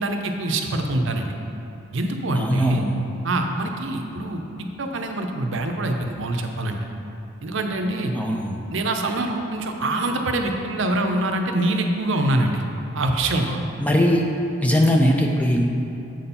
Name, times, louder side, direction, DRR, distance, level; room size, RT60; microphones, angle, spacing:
voice 1, 0.0-1.3 1.9-2.8 3.2-4.4 4.8-6.8 7.4-8.1 8.7-12.6 12.9-13.6, right 2 dB, 60° right, 4 dB, 0.6 m, -24 dB
voice 2, 2.3-3.0 8.1-8.6 13.8-14.2 14.6-15.6, equal, 5° left, 0 dB, 0.4 m, -20 dB
7.5 x 4.3 x 5.5 m, 2.9 s
head